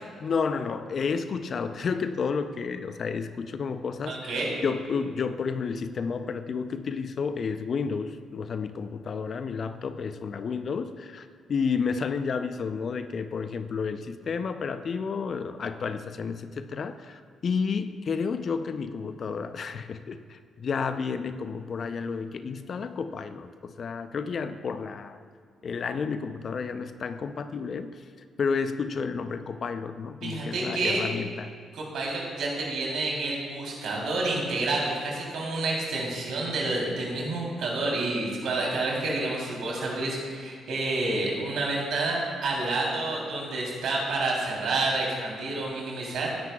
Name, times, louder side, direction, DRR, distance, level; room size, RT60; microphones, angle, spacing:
voice 1, 0.2-25.2 25.6-28.0 28.4-31.5, left 5 dB, 55° left, 10 dB, 0.6 m, -31 dB
voice 2, 4.1-4.5 30.2-31.0 31.7-46.3, right 2 dB, 65° right, -3 dB, 3.3 m, -29 dB
19.0 x 10.5 x 2.3 m, 2.1 s
hypercardioid pair, 45°, 0 cm